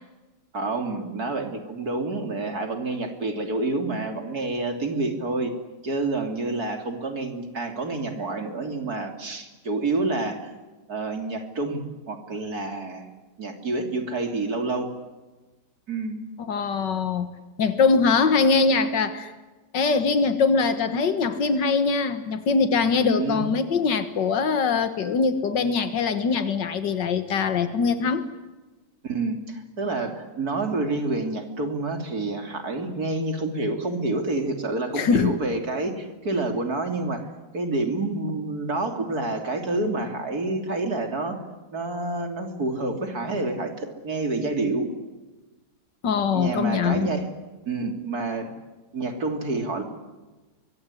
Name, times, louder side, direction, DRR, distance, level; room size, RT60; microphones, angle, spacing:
voice 1, 0.5-5.5 5.8-10.5 10.9-13.1 13.4-14.9 15.9-16.2 23.0-23.5 29.0-41.4 41.7-44.9 46.3-47.3 47.7-48.5 48.9-49.8, right 2 dB, 60° right, 6 dB, 3.6 m, -28 dB
voice 2, 16.5-17.3 17.6-19.3 19.7-28.3 35.0-35.3 46.0-47.1, left 5 dB, 85° left, 10 dB, 2.1 m, -22 dB
24.5 x 23.5 x 9.9 m, 1.2 s
omnidirectional pair, 1.8 m